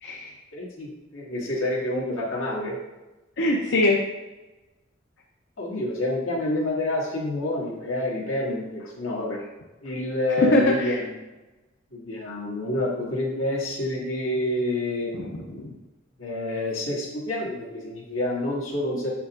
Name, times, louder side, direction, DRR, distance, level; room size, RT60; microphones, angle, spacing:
voice 1, 0.0-0.3 3.4-4.0 10.4-11.0 15.1-15.7, left 2 dB, 60° left, 0 dB, 0.6 m, -23 dB
voice 2, 0.5-2.8 5.6-9.4 9.8-11.1 11.9-15.1 16.2-19.1, left 1 dB, 80° left, -3 dB, 1.8 m, -28 dB
6.9 x 6.2 x 2.4 m, 1.1 s
head